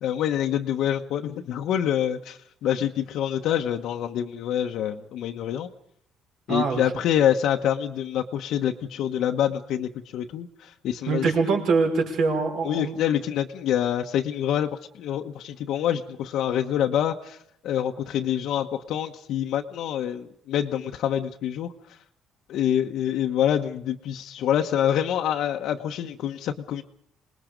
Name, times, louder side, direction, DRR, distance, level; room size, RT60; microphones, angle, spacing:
voice 1, 0.0-5.7 6.5-11.3 12.6-14.7 14.9-17.4 17.6-21.7 22.5-26.8, left 10 dB, 65° left, 3 dB, 1.0 m, -26 dB
voice 2, 6.5-6.8 11.1-12.9, right 4 dB, 65° right, 3 dB, 5.4 m, -23 dB
26.5 x 20.0 x 5.2 m, 0.71 s
cardioid pair, 145°, 0 cm